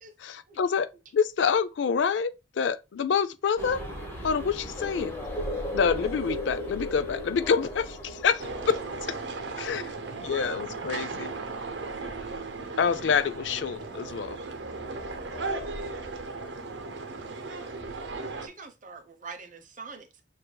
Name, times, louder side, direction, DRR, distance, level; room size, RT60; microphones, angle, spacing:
voice 1, 0.2-3.8 4.2-5.1 5.7-8.8 9.1-9.2 9.6-9.9 10.2-11.3 12.8-14.4 15.3-15.7 16.3-16.5, left 6 dB, 80° left, 0.4 m, -27 dB
sound 1, 3.6-9.1, left 1 dB, 15° left, 1.1 m, -35 dB
sound 2, 8.4-18.5, right 3 dB, 80° right, 0.8 m, -36 dB
voice 2, 13.5-15.4 16.6-17.2, right 1 dB, 5° right, 0.6 m, -55 dB
voice 3, 18.4-20.2, right 4 dB, 45° right, 0.8 m, -44 dB
6.6 x 2.5 x 2.2 m
head